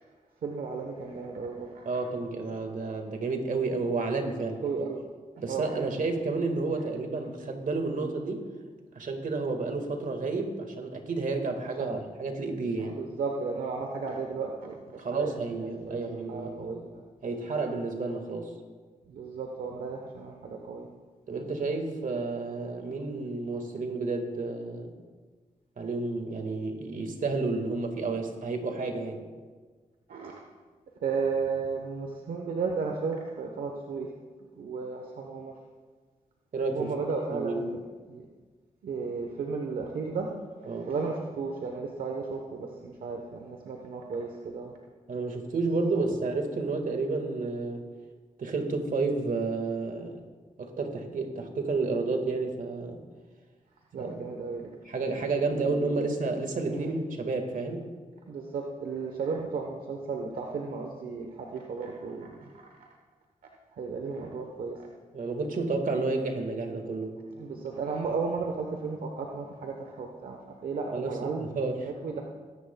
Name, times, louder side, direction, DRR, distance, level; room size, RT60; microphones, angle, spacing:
voice 1, 0.4-2.0 4.6-5.0 5.4-5.9 6.8-6.9 11.6-12.0 12.3-12.4 12.8-17.0 19.1-20.9 30.1-30.4 31.0-34.1 34.6-35.5 36.7-38.2 38.8-40.3 40.6-44.7 53.9-54.7 55.5-56.1 56.7-56.9 58.3-62.5 63.7-64.9 67.3-70.4 70.6-71.5 71.8-72.2, right 4 dB, 85° right, 1 dB, 1.0 m, -34 dB
voice 2, 1.8-4.6 5.4-8.4 8.9-13.0 15.0-16.8 17.2-18.5 21.3-24.9 25.8-29.2 36.5-36.9 37.3-37.6 40.7-40.9 45.1-47.8 48.4-50.2 50.6-53.0 54.0-54.1 54.8-58.0 65.1-67.2 70.9-71.9, right 3 dB, 65° right, 4 dB, 1.8 m, -31 dB
22.0 x 10.5 x 2.3 m, 1.4 s
cardioid pair, 50°, 15 cm